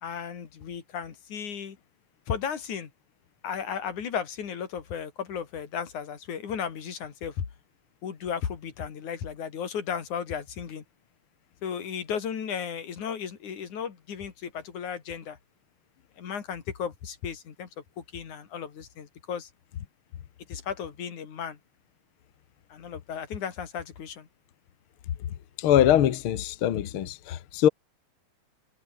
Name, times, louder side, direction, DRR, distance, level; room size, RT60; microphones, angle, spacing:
voice 1, 0.0-1.8 2.3-2.9 3.4-7.4 8.0-10.8 11.6-15.4 16.2-17.7 18.0-19.5 20.5-21.6 22.7-24.3, left 7 dB, 90° left, 4.2 m, -35 dB
voice 2, 25.6-27.7, left 11 dB, 55° left, 1.8 m, -22 dB
omnidirectional pair, 3.3 m